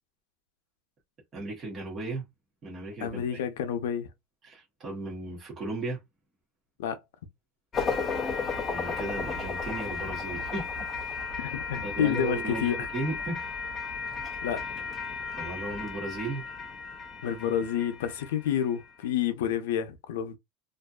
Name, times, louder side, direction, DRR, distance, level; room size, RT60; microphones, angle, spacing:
voice 1, 1.3-2.2 2.6-3.4 4.4-6.0 8.7-10.8 11.8-13.4 15.4-16.4, right 3 dB, 20° right, 1.0 m, -35 dB
voice 2, 3.0-4.1 6.8-7.0 11.4-12.9 14.4-14.8 17.2-20.4, left 9 dB, 90° left, 0.6 m, -29 dB
sound 1, 7.7-18.9, left 4 dB, 15° left, 0.4 m, -34 dB
2.6 x 2.3 x 2.3 m
supercardioid pair, 180°, 0 cm